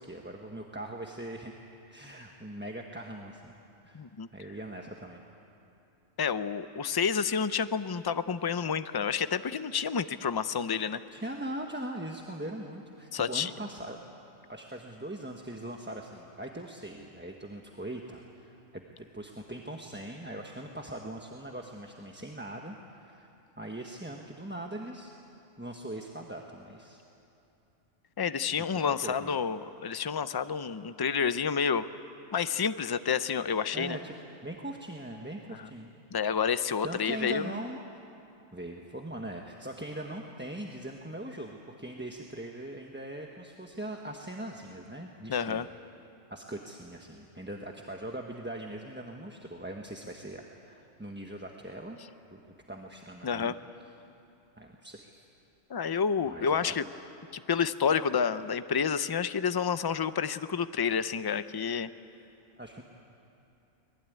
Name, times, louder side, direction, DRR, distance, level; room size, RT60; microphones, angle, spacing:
voice 1, 0.0-1.5 1.9-3.6 3.8-4.0 4.3-5.2 11.1-14.0 14.5-23.3 23.6-25.1 25.6-27.0 28.8-29.4 33.7-34.1 34.4-35.9 36.8-37.8 38.5-45.7 46.3-52.0 52.3-52.4 52.7-53.6 54.6-55.1 56.3-56.7 62.6-62.8, right 1 dB, 10° right, 1 dB, 1.1 m, -41 dB
voice 2, 3.9-4.3 6.2-11.0 13.1-13.5 28.2-31.9 32.3-34.0 35.6-35.7 36.1-37.6 45.3-45.7 53.2-53.5 55.7-56.8 57.3-61.9, left 6 dB, 40° left, 12 dB, 0.3 m, -29 dB
24.5 x 20.0 x 9.3 m, 2.8 s
omnidirectional pair, 1.3 m